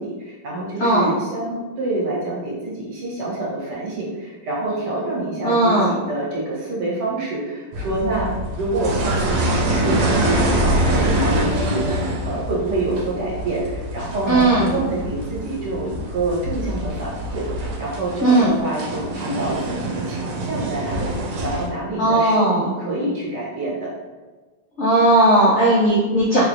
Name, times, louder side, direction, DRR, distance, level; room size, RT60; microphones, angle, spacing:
voice 1, 0.0-11.9 12.2-23.9, right 2 dB, 65° right, -5 dB, 1.6 m, -27 dB
voice 2, 0.8-1.1 5.4-5.9 14.3-14.7 18.2-18.5 22.0-22.7 24.8-26.5, right 1 dB, 75° left, -6 dB, 0.6 m, -16 dB
sound 1, 7.7-21.7, right 1 dB, 85° right, 1.4 m, -25 dB
4.1 x 2.4 x 3.2 m, 1.3 s
omnidirectional pair, 2.1 m